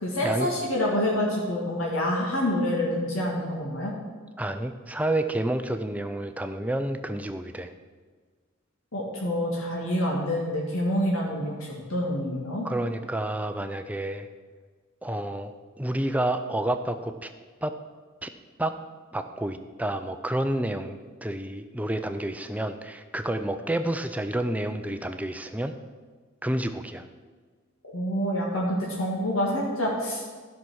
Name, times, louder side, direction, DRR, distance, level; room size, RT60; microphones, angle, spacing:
voice 1, 0.0-3.9 8.9-12.7 27.9-30.2, left 1 dB, 90° left, -3 dB, 2.0 m, -27 dB
voice 2, 4.4-7.7 12.6-14.3 15.0-17.3 17.6-17.7 18.2-18.3 18.6-18.7 19.1-25.7 26.4-27.1, right 1 dB, 5° right, 7 dB, 0.5 m, -29 dB
12.5 x 5.8 x 6.2 m, 1.5 s
head